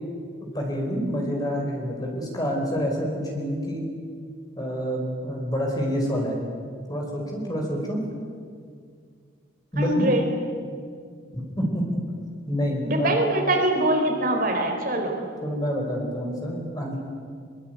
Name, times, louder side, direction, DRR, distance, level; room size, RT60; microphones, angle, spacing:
voice 1, 0.5-3.9 4.6-6.4 6.9-8.0 9.7-10.1 11.3-12.0 12.5-13.2 15.4-17.0, equal, 20° left, 0 dB, 4.8 m, -27 dB
voice 2, 9.8-10.2 12.8-15.3, right 1 dB, 45° right, 3 dB, 3.7 m, -23 dB
23.0 x 21.5 x 9.3 m, 2.1 s
head